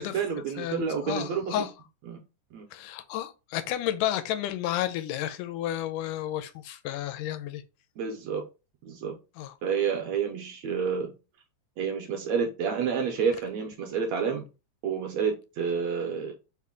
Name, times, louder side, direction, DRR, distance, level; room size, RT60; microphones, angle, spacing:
voice 1, 0.0-1.7 2.1-2.2 2.5-2.7 8.0-8.4 8.8-9.1 9.6-11.1 11.8-14.5 14.8-16.3, right 6 dB, 80° right, 1.6 m, -29 dB
voice 2, 0.6-1.7 2.7-7.6 9.4-9.5, left 12 dB, 85° left, 2.1 m, -31 dB
5.4 x 2.1 x 3.6 m
omnidirectional pair, 3.6 m